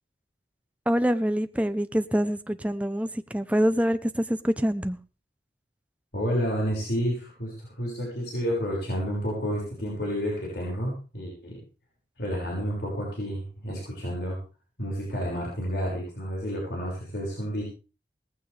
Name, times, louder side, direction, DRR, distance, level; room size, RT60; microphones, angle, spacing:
voice 1, 0.9-5.0, equal, 10° right, 0.8 m, -25 dB
voice 2, 6.1-11.6 12.2-14.4 14.8-17.6, equal, 65° left, 6.1 m, -30 dB
19.0 x 15.5 x 3.5 m
head